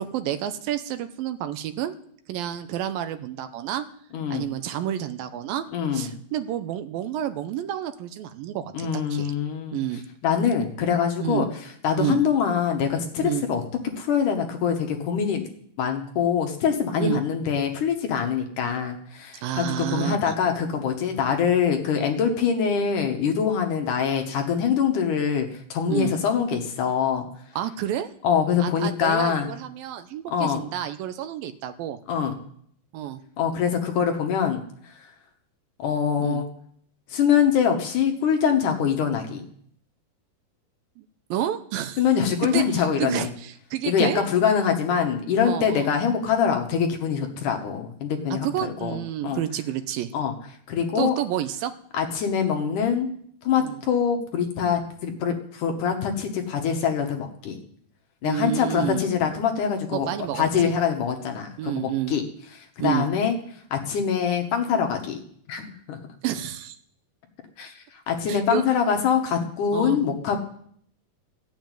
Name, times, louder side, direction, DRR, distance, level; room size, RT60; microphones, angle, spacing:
voice 1, 0.0-2.0 2.3-3.9 4.3-5.7 5.9-9.3 9.7-10.0 11.2-11.5 12.0-12.2 13.2-13.4 17.0-17.2 19.4-20.3 25.9-26.1 27.6-28.1 28.6-32.0 32.9-33.2 36.2-36.4 41.0-41.1 41.3-42.0 42.5-42.6 43.0-44.3 45.5-45.9 48.3-50.1 51.0-51.7 53.6-53.8 58.2-59.0 59.9-60.7 61.6-62.1 62.8-63.1 66.2-66.8 68.3-68.6 69.7-70.0, right 11 dB, 75° right, 10 dB, 2.5 m, -29 dB
voice 2, 4.1-4.5 5.7-6.1 8.7-9.8 10.2-11.5 11.8-13.6 14.0-15.4 15.8-27.3 28.2-29.5 30.3-30.6 32.1-32.3 33.4-34.9 35.8-36.5 37.1-39.4 42.0-43.3 43.8-49.0 49.2-49.4 50.1-50.3 50.7-51.2 51.9-53.1 53.4-57.6 58.2-60.1 60.3-62.2 62.8-63.4 63.7-65.2 65.5-66.0 67.6-70.4, left 7 dB, 65° left, 4 dB, 2.6 m, -24 dB
14.0 x 7.2 x 9.1 m, 0.64 s
omnidirectional pair, 4.3 m